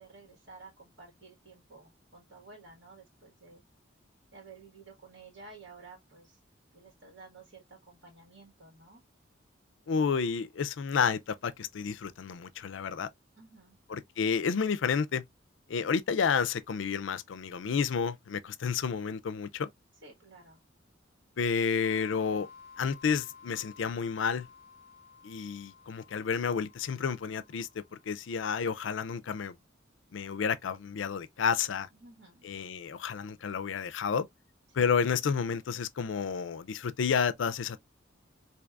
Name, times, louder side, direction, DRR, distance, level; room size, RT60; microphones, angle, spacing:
voice 1, 0.0-3.6 4.3-6.4 6.7-9.0 13.4-13.8 20.0-20.6 31.9-32.5 34.7-34.9, right 3 dB, 75° right, 1.7 m, -53 dB
voice 2, 9.9-13.1 13.9-15.2 15.7-19.7 21.4-22.5 22.8-24.5 25.2-29.6 30.1-31.9 32.4-34.3 34.7-37.8, left 6 dB, 80° left, 0.4 m, -30 dB
sound 1, 21.8-28.3, left 5 dB, 35° left, 0.9 m, -54 dB
4.5 x 2.8 x 2.4 m
head